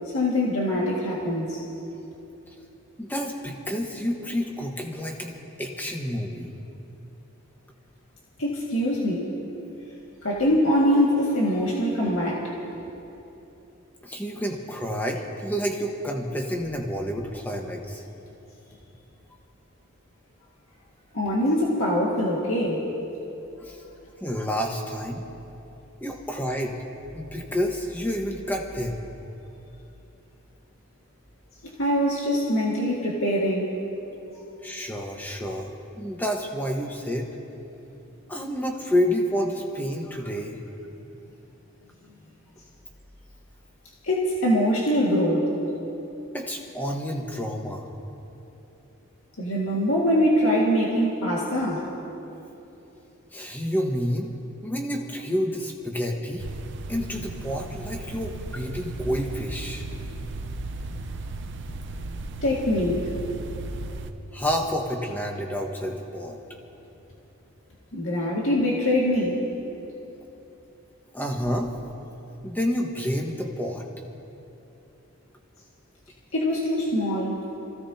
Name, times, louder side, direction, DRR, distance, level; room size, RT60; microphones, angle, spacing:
voice 1, 0.1-1.6 8.4-9.3 10.2-12.5 21.1-22.8 31.8-33.7 44.0-45.6 49.4-51.9 62.4-63.1 67.9-69.5 76.3-77.4, equal, 70° left, -4 dB, 2.0 m, -23 dB
voice 2, 3.0-6.5 14.0-18.0 23.6-23.8 24.2-25.2 26.0-26.8 27.1-29.0 34.6-37.3 38.3-40.6 46.3-47.9 53.3-54.3 54.6-56.4 56.9-59.8 64.3-66.4 71.1-71.7 72.4-73.8, equal, 10° left, 1 dB, 1.3 m, -29 dB
sound 1, 56.4-64.1, right 2 dB, 55° right, 0.8 m, -35 dB
28.0 x 16.0 x 2.8 m, 3.0 s
head